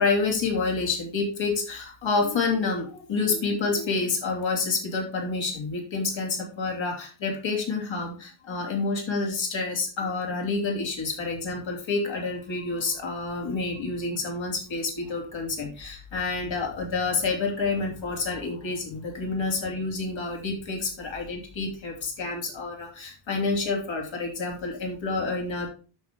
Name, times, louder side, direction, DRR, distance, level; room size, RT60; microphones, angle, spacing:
voice 1, 0.0-25.7, left 3 dB, 75° left, 1 dB, 2.7 m, -28 dB
8.3 x 6.7 x 3.7 m, 0.36 s
cardioid pair, 90°, 46 cm